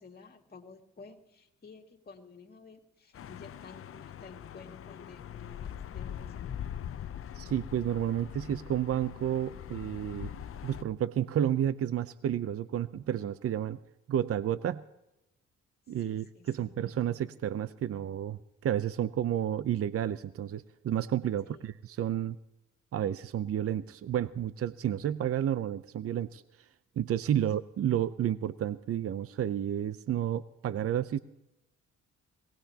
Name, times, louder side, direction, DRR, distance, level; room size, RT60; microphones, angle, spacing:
voice 1, 0.0-6.6 15.9-16.8 21.4-21.6 27.3-27.4, left 4 dB, 30° left, 1 dB, 2.3 m, -52 dB
sound 1, 3.1-10.8, left 9 dB, 45° left, 0.7 m, -42 dB
voice 2, 7.4-10.3 10.6-13.8 14.1-14.8 15.9-16.2 16.6-21.7 22.0-22.4 22.9-26.4 27.0-31.2, right 10 dB, 50° right, 14 dB, 0.6 m, -31 dB
22.5 x 18.5 x 2.9 m, 0.88 s
cardioid pair, 90°, 30 cm